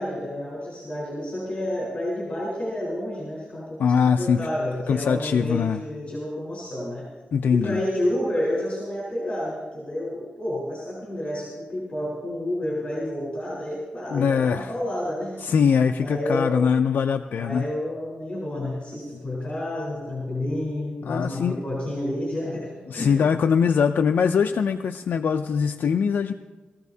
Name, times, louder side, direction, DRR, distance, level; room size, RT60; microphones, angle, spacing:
voice 1, 0.0-7.1 7.5-15.4 16.0-16.6 17.4-23.3, left 1 dB, 35° left, -5 dB, 3.9 m, -30 dB
voice 2, 3.8-4.4 4.9-5.8 7.3-7.8 14.1-14.7 15.4-17.6 21.1-21.6 22.9-26.3, left 6 dB, 75° left, 6 dB, 0.4 m, -22 dB
20.0 x 14.5 x 2.7 m, 1.3 s
wide cardioid pair, 135°, 3 cm